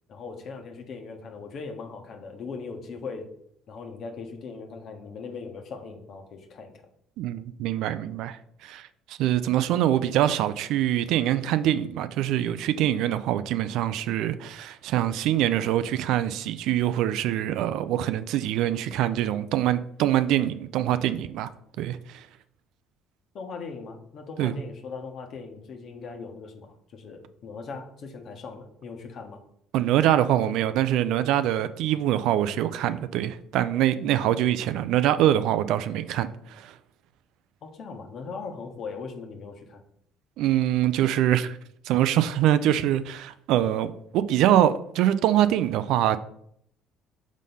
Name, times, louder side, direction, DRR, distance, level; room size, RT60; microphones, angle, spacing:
voice 1, 0.1-3.3 3.7-6.8 23.3-29.4 37.6-39.8, left 4 dB, 55° left, 1.3 m, -39 dB
voice 2, 7.2-21.5 21.8-22.3 24.4-24.5 29.7-36.7 40.4-41.6 41.8-46.2, right 12 dB, 70° right, 0.4 m, -24 dB
6.2 x 3.7 x 5.5 m
hypercardioid pair, 60°, 0 cm